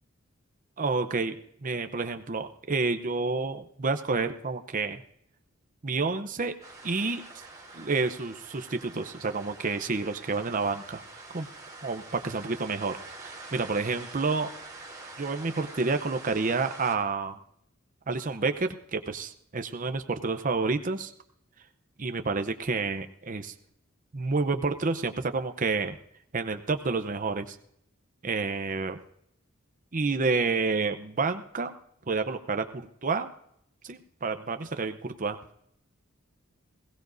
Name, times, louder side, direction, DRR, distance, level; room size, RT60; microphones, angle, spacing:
voice 1, 0.8-5.0 5.8-6.5 6.8-7.2 7.7-11.5 11.8-14.5 15.2-17.4 18.1-21.1 22.0-23.5 24.1-26.0 26.3-27.6 28.2-29.0 29.9-31.7 32.1-33.3 33.8-35.4, right 4 dB, 40° right, 7 dB, 0.7 m, -29 dB
sound 1, 6.6-17.0, right 3 dB, 15° right, 3.6 m, -46 dB
21.5 x 17.0 x 2.6 m, 0.72 s
head